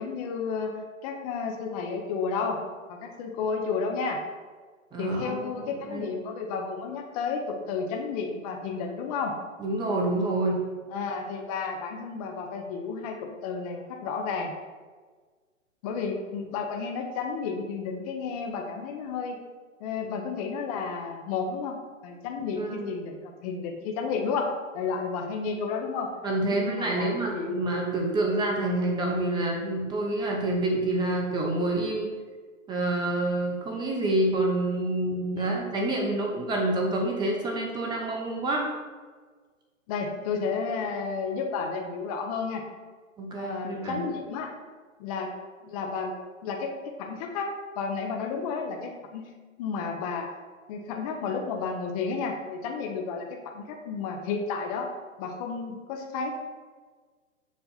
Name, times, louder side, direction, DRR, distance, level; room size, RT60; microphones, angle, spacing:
voice 1, 0.0-2.6 2.9-4.2 5.0-9.4 10.9-14.5 15.8-19.4 19.8-26.1 26.4-27.6 35.4-35.6 39.9-42.7 43.4-44.5 45.0-45.3 45.6-46.1 46.4-46.7 47.0-47.5 47.8-49.3 49.6-50.3 50.7-54.9 55.2-56.3, left 5 dB, 30° left, 2 dB, 0.6 m, -32 dB
voice 2, 4.9-6.1 9.6-10.6 22.6-22.9 26.2-32.1 32.7-38.7 43.2-44.0, right 2 dB, 10° right, 0 dB, 0.7 m, -27 dB
7.2 x 2.5 x 5.7 m, 1.4 s
hypercardioid pair, 130°, 41 cm